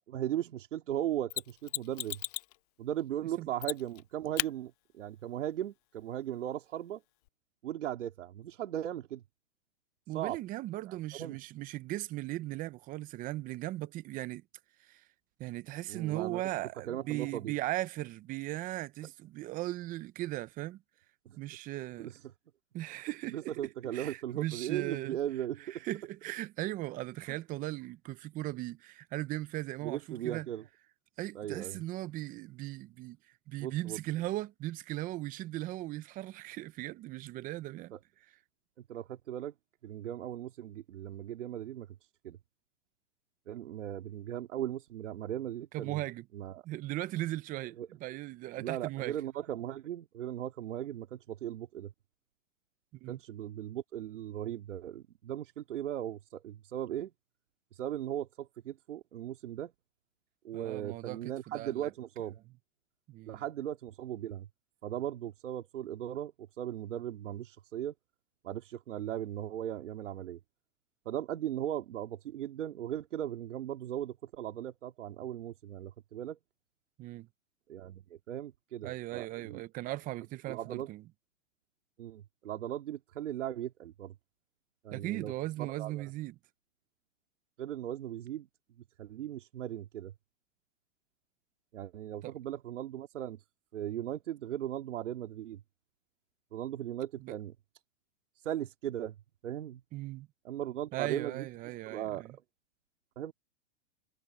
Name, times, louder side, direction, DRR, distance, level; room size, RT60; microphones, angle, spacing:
voice 1, 0.1-2.2 2.8-7.0 7.6-9.2 10.1-10.4 10.8-11.4 15.9-16.4 16.9-17.5 21.3-21.4 22.0-22.2 23.3-25.8 27.3-27.4 29.8-30.6 31.3-31.8 33.6-34.0 37.9-38.0 38.8-39.5 39.8-41.9 42.2-42.4 43.5-46.0 46.3-46.6 47.8-47.9 48.6-51.9 53.1-57.1 57.7-59.7 60.4-62.4 63.3-64.5 64.8-67.9 68.4-70.4 71.1-76.4 77.7-79.9 80.5-80.9 82.0-84.1 84.8-85.3 85.6-86.1 87.6-88.5 89.0-90.1 91.7-93.4 93.7-95.6 96.5-97.5 98.4-99.2 99.4-99.8 100.4-102.4 103.2-103.3, right 11 dB, 75° right, 2.4 m, -38 dB
Mechanisms, 1.3-2.6 3.6-4.0 4.4-4.5 7.3-7.4, left 21 dB, 35° left, 0.4 m, -35 dB
voice 2, 10.1-14.4 14.9-15.0 15.4-20.8 21.4-22.1 22.7-23.5 23.9-25.2 25.7-30.5 31.2-33.2 33.5-37.9 45.7-46.2 46.6-49.1 53.0-53.2 60.5-61.9 63.1-63.4 77.0-77.3 78.8-81.0 84.9-86.3 92.2-92.3 97.2-97.3 99.9-100.3 100.9-102.4, right 16 dB, 25° right, 0.7 m, -38 dB
hypercardioid pair, 140°, 37 cm